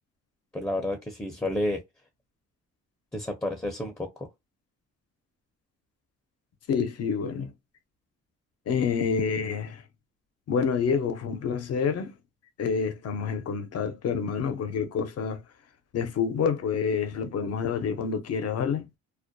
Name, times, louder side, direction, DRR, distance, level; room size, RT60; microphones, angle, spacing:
voice 1, 0.5-1.8 3.1-4.3, left 1 dB, 10° left, 0.6 m, -30 dB
voice 2, 6.7-7.5 8.7-9.8 10.5-12.1 12.6-15.4 15.9-18.9, left 6 dB, 55° left, 0.7 m, -28 dB
2.3 x 2.1 x 2.5 m
cardioid pair, 90°, 30 cm